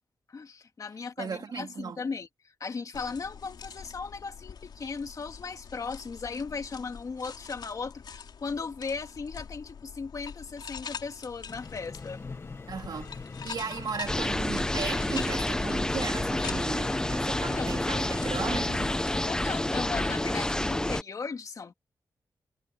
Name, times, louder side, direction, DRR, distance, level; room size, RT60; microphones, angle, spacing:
voice 1, 0.3-12.2 17.4-17.7 19.2-21.7, left 5 dB, 50° left, 2.3 m, -37 dB
voice 2, 1.2-2.0 12.7-13.2 13.4-19.0, right 6 dB, 70° right, 3.3 m, -36 dB
sound 1, 2.9-20.2, left 7 dB, 80° left, 4.0 m, -45 dB
sound 2, 11.5-19.0, left 4 dB, 35° left, 1.2 m, -41 dB
sound 3, 14.1-21.0, left 1 dB, 10° left, 0.7 m, -29 dB
wide cardioid pair, 140°, 7 cm